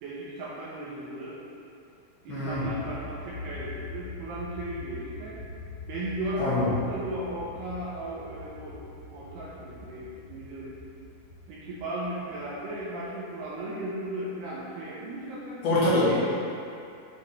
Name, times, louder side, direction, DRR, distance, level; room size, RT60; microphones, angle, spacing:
voice 1, 0.0-1.4 2.3-5.4 5.9-8.9 9.1-10.7 11.5-15.6 16.0-16.2, right 1 dB, 80° right, -7 dB, 2.4 m, -36 dB
voice 2, 2.3-2.6 6.4-6.7 15.6-16.2, left 1 dB, 65° left, -10 dB, 3.2 m, -24 dB
sound 1, 2.5-13.7, left 3 dB, 90° left, 1.5 m, -43 dB
9.3 x 3.9 x 3.3 m, 2.5 s
omnidirectional pair, 5.3 m